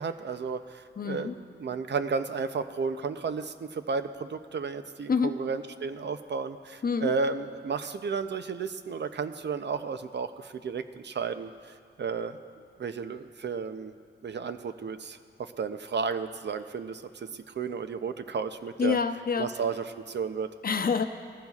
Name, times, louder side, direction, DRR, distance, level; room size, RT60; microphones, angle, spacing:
voice 1, 0.0-1.3 1.6-11.5 12.0-12.4 12.8-13.9 14.2-19.0 19.4-20.5, right 5 dB, 65° right, 10 dB, 0.6 m, -33 dB
voice 2, 1.0-1.4 5.1-5.4 6.8-7.1 18.8-19.5 20.6-21.0, left 5 dB, 50° left, 8 dB, 0.7 m, -27 dB
19.5 x 14.5 x 2.4 m, 2.1 s
wide cardioid pair, 80°, 19 cm